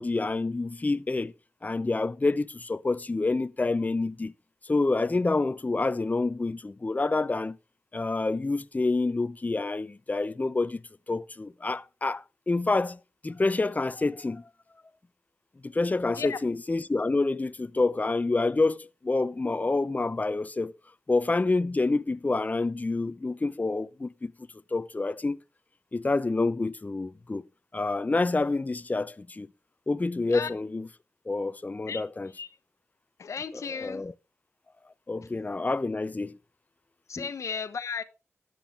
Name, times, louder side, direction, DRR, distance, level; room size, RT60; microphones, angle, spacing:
voice 1, 0.0-1.3 1.6-4.3 4.6-7.6 7.9-10.8 11.1-14.4 15.6-20.7 21.1-24.3 24.7-25.4 25.9-27.4 27.7-29.5 29.9-30.9 31.3-32.3 33.5-34.1 35.1-36.4 37.2-37.3, left 3 dB, 30° left, 0.7 m, -28 dB
voice 2, 31.9-32.5 33.2-34.0 37.1-38.0, left 6 dB, 75° left, 1.1 m, -35 dB
13.0 x 9.2 x 3.5 m
cardioid pair, 50°, 5 cm